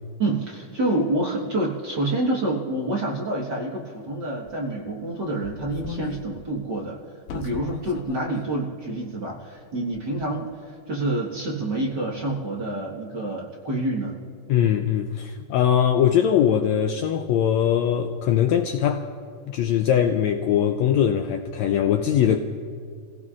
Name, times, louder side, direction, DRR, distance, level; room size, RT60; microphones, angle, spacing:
voice 1, 0.2-7.0 7.3-14.2, right 2 dB, 45° right, 1.6 m, -27 dB
sound 1, 4.5-4.6 5.2-6.3 6.6-6.7 7.3-8.2 8.5-8.6 9.3-9.6 9.9-10.3, left 6 dB, 70° left, 2.2 m, -37 dB
voice 2, 14.5-19.0 19.5-22.4, left 9 dB, 90° left, 1.6 m, -21 dB
30.0 x 17.0 x 2.5 m
omnidirectional pair, 3.8 m